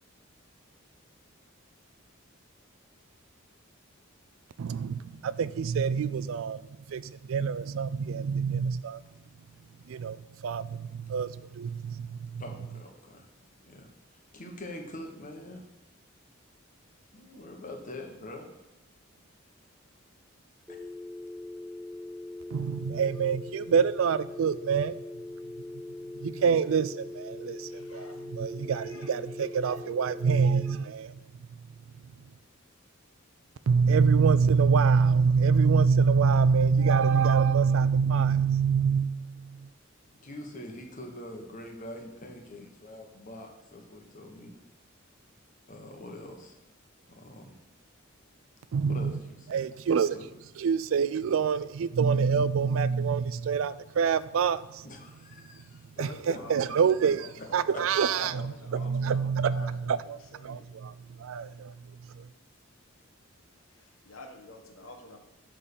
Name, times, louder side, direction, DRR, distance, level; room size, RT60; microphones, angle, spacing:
voice 1, 4.6-6.6 6.9-9.0 9.9-10.2 10.4-12.4 22.5-25.0 26.2-31.2 33.7-39.5 48.7-49.1 49.5-50.2 50.6-54.6 56.0-56.1 56.5-57.2 57.5-60.9 61.2-61.7, right 6 dB, 70° right, 16 dB, 0.4 m, -26 dB
voice 2, 12.4-13.2 13.6-13.9 14.3-15.6 17.1-18.4 40.2-44.5 45.7-46.5 47.1-47.6 48.9-50.3 54.8-56.4 57.4-57.5 57.7-57.8 58.2-58.3, left 1 dB, 40° left, 2 dB, 1.3 m, -44 dB
sound 1, 20.7-30.7, left 2 dB, ahead, 0.7 m, -41 dB
voice 3, 27.7-28.2 28.7-29.1 56.0-56.8 57.5-58.0 58.3-58.5 58.7-60.7 64.0-65.2, left 2 dB, 80° left, 4 dB, 1.3 m, -48 dB
8.3 x 3.8 x 6.9 m, 0.93 s
head